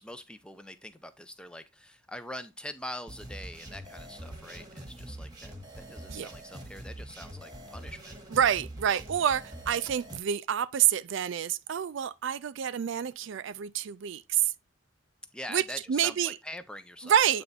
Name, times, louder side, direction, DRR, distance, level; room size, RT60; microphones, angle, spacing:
voice 1, 0.0-8.2 8.9-9.0 15.3-17.2, left 1 dB, 5° left, 0.4 m, -44 dB
sound 1, 3.1-10.2, right 1 dB, 20° right, 1.2 m, -44 dB
voice 2, 8.3-14.5 15.5-16.4 17.0-17.4, right 9 dB, 60° right, 0.3 m, -28 dB
8.5 x 3.4 x 3.9 m
head